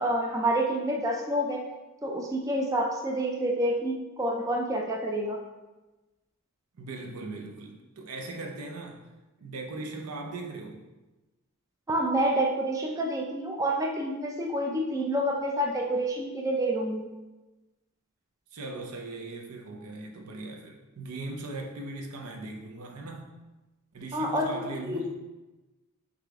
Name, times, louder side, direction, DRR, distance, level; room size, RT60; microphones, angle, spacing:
voice 1, 0.0-1.7 2.0-5.4 11.9-17.1 24.1-25.0, right 1 dB, 15° right, 1 dB, 0.3 m, -28 dB
voice 2, 6.7-9.0 9.4-10.8 18.5-23.3 23.9-25.1, right 2 dB, 80° right, 2 dB, 0.6 m, -39 dB
4.9 x 2.4 x 3.5 m, 1.1 s
head